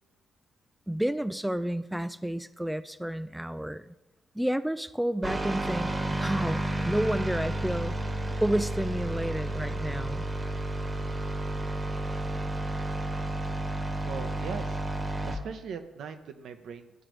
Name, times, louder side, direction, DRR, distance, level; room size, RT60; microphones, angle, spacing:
voice 1, 0.9-3.9 4.4-7.9 8.4-10.3, right 1 dB, 5° right, 12 dB, 0.3 m, -30 dB
sound 1, 5.2-15.4, right 1 dB, 25° right, 1.1 m, -31 dB
voice 2, 14.0-14.8 15.2-16.9, right 6 dB, 65° right, 7 dB, 0.7 m, -40 dB
13.0 x 4.9 x 3.0 m, 1.0 s
hypercardioid pair, 45°, 0 cm